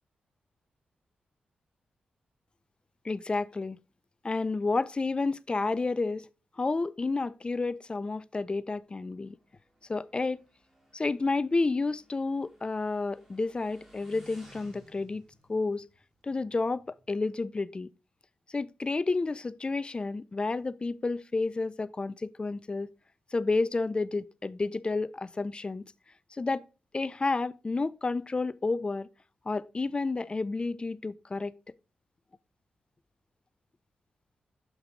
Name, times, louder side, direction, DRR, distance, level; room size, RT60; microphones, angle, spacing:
voice 1, 3.0-3.8 4.2-6.3 6.6-9.4 9.9-10.4 10.9-15.2 15.5-15.9 16.2-17.9 18.5-22.9 23.3-25.8 26.3-26.6 26.9-29.1 29.5-31.6, left 3 dB, 30° left, 0.4 m, -30 dB
Motorcycle, 8.8-17.1, equal, 10° right, 2.6 m, -59 dB
6.7 x 6.0 x 3.6 m
cardioid pair, 70°, 3 cm